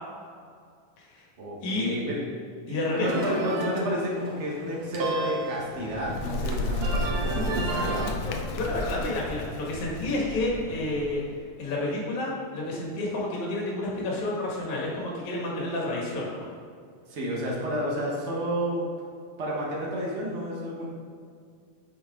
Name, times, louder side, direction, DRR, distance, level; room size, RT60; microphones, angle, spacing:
voice 1, 1.4-2.2 2.7-8.2 17.1-18.9 19.4-20.9, equal, 80° right, -4 dB, 0.6 m, -31 dB
voice 2, 2.7-3.3 7.8-11.2 11.6-16.5, left 2 dB, 60° left, -4 dB, 3.1 m, -30 dB
sound 1, 3.0-8.1, right 2 dB, 65° right, 2.1 m, -33 dB
Bird, 5.7-11.4, left 2 dB, 85° left, 1.5 m, -33 dB
8.8 x 6.9 x 3.8 m, 2.2 s
omnidirectional pair, 3.8 m